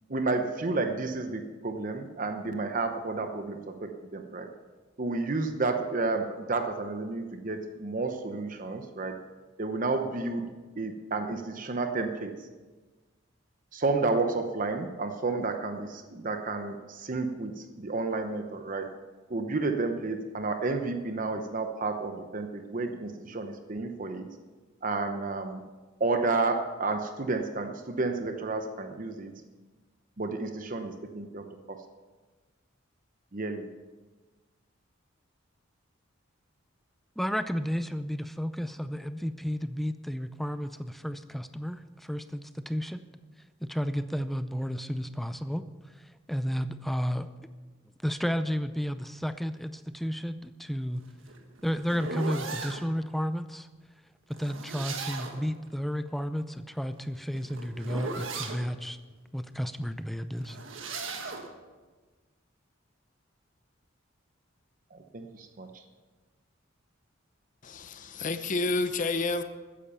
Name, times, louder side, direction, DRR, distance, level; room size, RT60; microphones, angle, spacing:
voice 1, 0.1-4.5 5.0-9.2 9.6-12.5 13.7-19.0 19.3-24.3 24.8-25.6 26.0-29.4 30.2-31.8 33.3-33.7 64.9-65.8, right 3 dB, 40° right, 6 dB, 0.8 m, -31 dB
voice 2, 37.2-43.0 43.6-47.3 48.0-51.0 51.6-53.7 54.4-59.0 59.3-60.6, equal, ahead, 11 dB, 0.5 m, -32 dB
sound 1, 51.0-52.8 54.3-55.5 56.9-58.6 60.4-61.5, right 4 dB, 75° right, 1.6 m, -37 dB
voice 3, 67.6-69.4, left 3 dB, 40° left, 10 dB, 0.7 m, -29 dB
14.0 x 10.0 x 5.6 m, 1.3 s
head